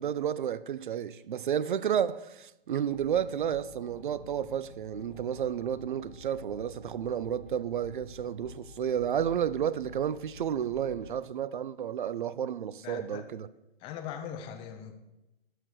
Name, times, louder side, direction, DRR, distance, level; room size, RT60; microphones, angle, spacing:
voice 1, 0.0-13.5, right 9 dB, 55° right, 0.6 m, -31 dB
sound 1, 2.9-11.2, left 2 dB, 50° left, 2.5 m, -50 dB
voice 2, 12.8-13.2 13.8-14.9, left 8 dB, 15° left, 0.8 m, -40 dB
12.5 x 4.8 x 6.6 m
figure-of-eight pair, 130°, 30 cm